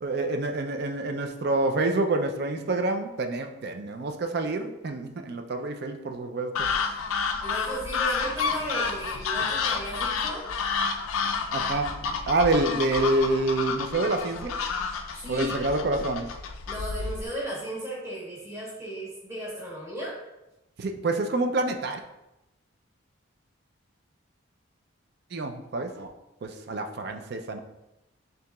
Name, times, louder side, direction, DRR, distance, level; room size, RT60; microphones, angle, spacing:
voice 1, 0.0-6.7 11.5-12.0 12.3-14.6 15.3-16.3 20.8-22.0 25.3-26.1 26.4-27.6, right 2 dB, 50° right, 6 dB, 0.4 m, -27 dB
sound 1, 6.5-17.3, left 5 dB, 80° left, 0.4 m, -30 dB
voice 2, 7.4-10.4 15.2-15.6 16.7-20.2, right 1 dB, 15° right, -6 dB, 1.1 m, -35 dB
6.7 x 2.8 x 2.3 m, 0.93 s
head